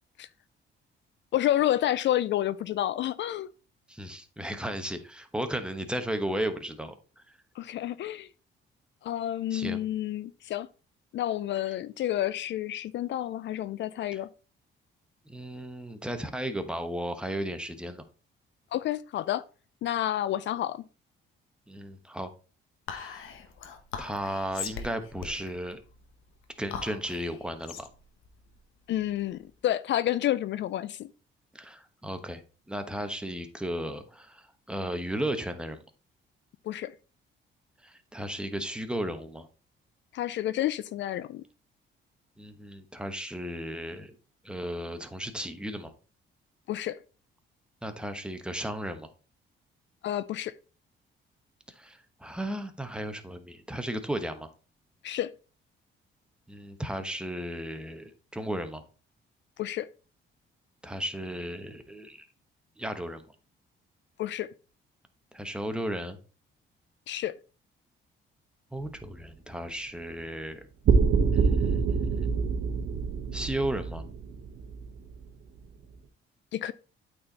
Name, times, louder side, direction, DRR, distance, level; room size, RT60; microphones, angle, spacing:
voice 1, 1.3-3.5 7.6-8.3 9.0-10.7 11.1-14.3 18.7-19.4 19.8-20.8 28.9-31.1 36.7-36.9 40.1-41.4 46.7-47.0 50.0-50.5 55.0-55.3 59.6-59.9 64.2-64.5 67.1-67.4 76.5-76.7, left 12 dB, 65° left, 0.4 m, -29 dB
voice 2, 3.9-7.2 9.5-9.8 14.1-14.2 15.3-18.0 21.7-22.3 22.9-23.2 24.0-25.8 26.6-27.9 31.5-32.4 32.7-35.8 37.8-39.5 42.4-44.1 44.4-45.9 47.8-49.1 51.8-54.5 56.5-58.8 60.8-62.3 62.8-63.2 65.3-66.2 68.7-70.7 71.3-72.3 73.3-74.0, right 1 dB, 5° right, 1.0 m, -35 dB
Whispering, 22.9-29.5, left 6 dB, 85° left, 1.1 m, -41 dB
sound 1, 70.8-75.2, right 5 dB, 65° right, 0.9 m, -26 dB
8.6 x 4.3 x 4.0 m
cardioid pair, 95°, 20 cm